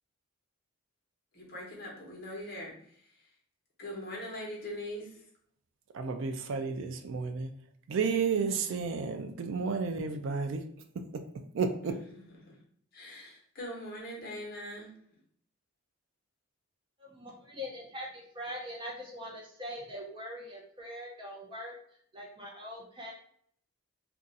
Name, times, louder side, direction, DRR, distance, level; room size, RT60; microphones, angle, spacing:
voice 1, 1.3-3.3 3.8-5.2 11.8-12.6 12.9-14.9, left 1 dB, 45° left, 1.0 m, -42 dB
voice 2, 5.9-7.5 7.9-10.6 11.1-11.2 11.5-12.0, right 5 dB, 60° right, 0.3 m, -31 dB
voice 3, 17.0-21.7 22.1-23.1, left 1 dB, 20° right, 0.6 m, -42 dB
2.6 x 2.3 x 3.9 m
head